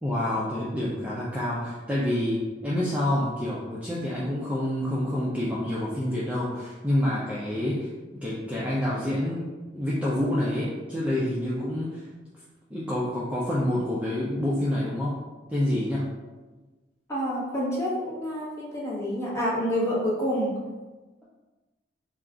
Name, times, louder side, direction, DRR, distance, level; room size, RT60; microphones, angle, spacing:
voice 1, 0.0-7.9 8.2-12.1 12.7-15.2 15.5-16.1, left 1 dB, 5° right, -7 dB, 0.4 m, -27 dB
voice 2, 17.1-20.6, equal, 15° left, -7 dB, 1.0 m, -28 dB
3.5 x 2.4 x 3.7 m, 1.2 s
head